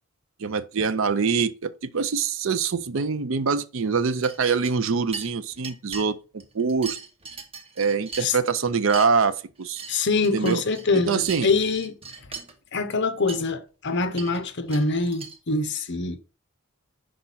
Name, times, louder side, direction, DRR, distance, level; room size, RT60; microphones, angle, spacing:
voice 1, 0.4-7.0 7.8-9.8 10.3-10.6 10.9-11.5, right 5 dB, 60° right, 0.5 m, -24 dB
sound 1, 4.2-4.9 5.1-6.1 6.4-8.5 8.8-9.1 9.5-11.4 11.7-12.5 13.0-13.1 13.3-13.4 14.1-15.4, right 4 dB, 25° right, 1.0 m, -39 dB
voice 2, 9.9-12.0 12.7-16.2, left 3 dB, 50° left, 0.7 m, -24 dB
5.7 x 5.0 x 4.0 m
head